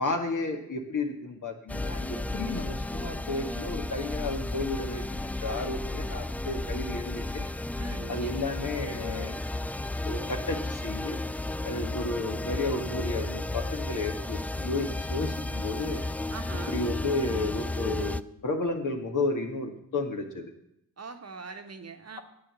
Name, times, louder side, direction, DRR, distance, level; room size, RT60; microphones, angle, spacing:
voice 1, 0.0-7.4 8.1-9.4 10.0-11.2 11.6-16.0 16.7-20.5, left 2 dB, 50° left, 3 dB, 2.0 m, -32 dB
sound 1, 1.7-18.2, left 2 dB, 5° left, 0.3 m, -33 dB
voice 2, 7.8-8.4 16.3-16.8 21.0-22.2, right 4 dB, 40° right, 6 dB, 1.3 m, -42 dB
9.7 x 7.8 x 7.0 m, 0.76 s
hypercardioid pair, 40°, 40 cm